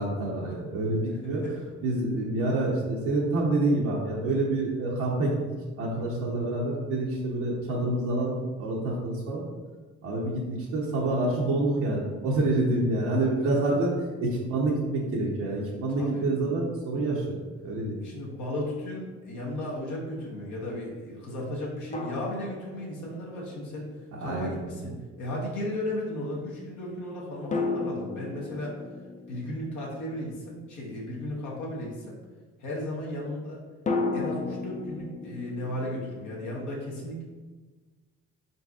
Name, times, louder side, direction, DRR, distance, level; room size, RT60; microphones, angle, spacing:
voice 1, 0.0-1.4 1.8-5.4 5.8-9.4 10.0-13.9 14.2-17.2 17.6-18.0 24.1-24.6, right 2 dB, 85° right, -5 dB, 0.8 m, -27 dB
voice 2, 1.0-1.6 6.3-6.6 13.3-13.6 15.5-15.6 16.0-16.3 18.0-23.9 24.2-28.8 29.3-32.2 32.6-33.6 34.1-37.2, left 1 dB, 75° left, -4 dB, 1.1 m, -35 dB
sound 1, 18.3-18.4 21.9-23.4 27.5-31.1 33.9-36.6, left 3 dB, 25° left, 0.4 m, -34 dB
4.1 x 3.9 x 2.4 m, 1.3 s
cardioid pair, 90°, 30 cm